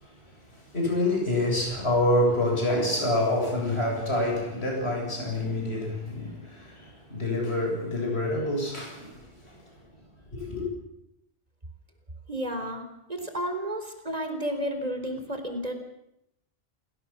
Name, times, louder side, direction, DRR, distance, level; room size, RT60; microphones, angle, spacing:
voice 1, 0.0-9.6 10.3-10.7, left 1 dB, 90° left, 8.2 m, -27 dB
voice 2, 12.3-12.8 13.1-15.7, equal, 40° right, 4.2 m, -31 dB
29.0 x 18.0 x 7.3 m
omnidirectional pair, 1.1 m